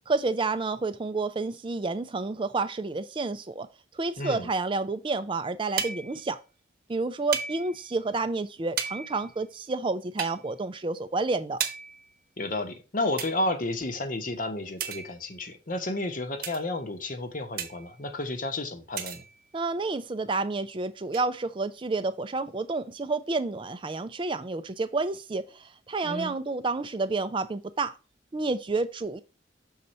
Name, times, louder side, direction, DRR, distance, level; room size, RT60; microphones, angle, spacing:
voice 1, 0.1-3.7 3.9-6.4 6.9-11.6 19.5-28.0 28.3-29.2, right 3 dB, 25° right, 0.4 m, -30 dB
voice 2, 4.2-4.5 12.4-19.2 26.0-26.4, left 2 dB, 45° left, 1.0 m, -31 dB
sound 1, 5.8-6.3 7.3-7.9 8.8-9.4 10.2-10.4 11.6-12.1 13.2-13.3 14.8-15.4 16.4-16.7 17.6-18.0 19.0-19.4 21.1-21.2, right 7 dB, 50° right, 0.9 m, -34 dB
6.5 x 4.1 x 4.2 m
head